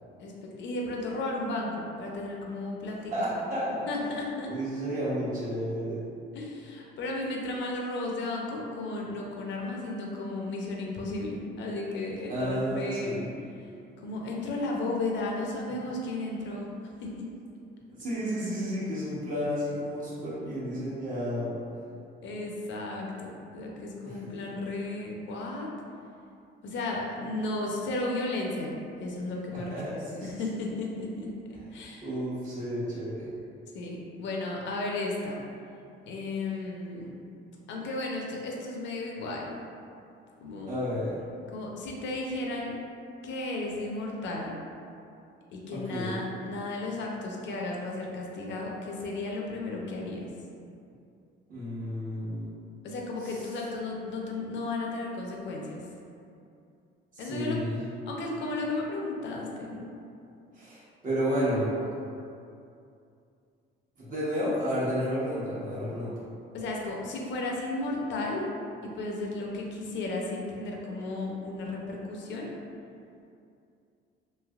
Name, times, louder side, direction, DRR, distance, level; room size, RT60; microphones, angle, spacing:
voice 1, 0.2-3.3 3.9-4.5 6.3-13.2 14.0-16.7 17.0-17.3 22.2-25.7 26.6-29.8 30.2-31.3 31.7-32.1 33.7-35.4 36.1-37.1 37.7-39.6 40.4-40.8 41.5-42.7 43.2-44.5 45.5-50.3 52.8-55.8 57.2-57.6 58.1-59.9 66.5-68.5 68.8-72.5, left 2 dB, 65° left, -1 dB, 0.5 m, -34 dB
voice 2, 3.1-4.0 4.5-6.0 12.3-13.3 17.9-21.5 24.0-24.4 29.7-30.3 32.0-33.3 40.7-41.2 45.7-46.1 51.5-52.5 53.2-53.4 57.1-57.8 60.5-61.8 64.0-66.1, equal, 40° right, -9 dB, 1.0 m, -31 dB
3.2 x 2.7 x 2.3 m, 2.5 s
cardioid pair, 120°, 20 cm